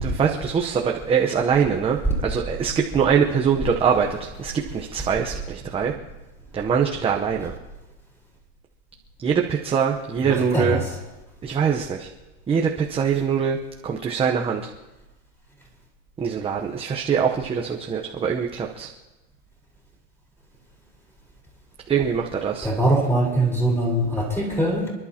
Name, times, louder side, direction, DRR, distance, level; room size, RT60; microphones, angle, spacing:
voice 1, 0.0-5.9 6.5-7.5 9.2-10.8 11.4-12.1 12.5-13.6 13.8-14.7 16.2-18.9 21.9-22.7, right 7 dB, 15° right, 1 dB, 0.9 m, -23 dB
voice 2, 10.2-10.8 22.6-24.9, right 1 dB, 5° left, -2 dB, 4.3 m, -22 dB
29.5 x 11.0 x 2.9 m, 1.1 s
hypercardioid pair, 125°, 38 cm